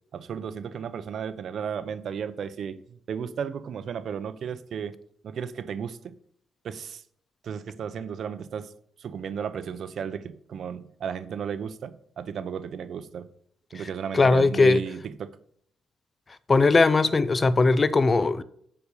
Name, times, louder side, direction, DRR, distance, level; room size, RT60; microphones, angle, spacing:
voice 1, 0.1-4.9 5.2-6.2 6.6-7.0 7.4-8.7 9.0-13.3 13.7-15.3, right 7 dB, 60° right, 0.6 m, -34 dB
voice 2, 14.1-14.8 16.5-18.4, left 3 dB, 30° left, 0.5 m, -19 dB
7.1 x 5.2 x 6.7 m
cardioid pair, 90°, 0 cm